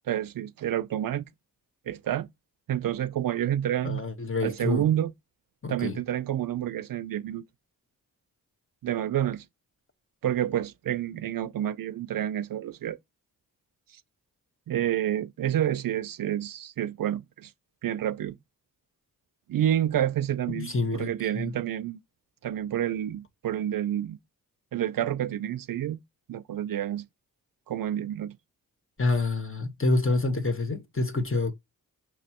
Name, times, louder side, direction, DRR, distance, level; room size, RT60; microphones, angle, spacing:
voice 1, 0.1-1.3 1.9-2.3 2.7-4.0 4.4-5.1 5.7-7.4 8.8-9.4 10.2-13.0 14.7-17.5 17.8-18.4 19.5-22.0 22.4-24.2 24.7-26.0 26.3-27.1 27.7-28.4, right 11 dB, 65° right, 0.5 m, -29 dB
voice 2, 3.8-4.9 5.6-6.0 20.5-21.5 29.0-31.5, left 3 dB, 35° left, 1.3 m, -27 dB
5.9 x 3.0 x 2.9 m
cardioid pair, 50°, 37 cm